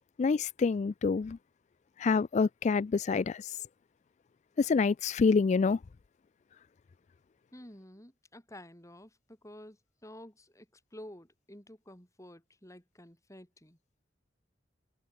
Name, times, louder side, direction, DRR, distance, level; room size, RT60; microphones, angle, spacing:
voice 1, 0.2-1.4 2.0-3.4 4.6-5.8, left 4 dB, 40° left, 0.3 m, -27 dB
voice 2, 7.5-13.8, left 1 dB, 15° left, 5.9 m, -51 dB
head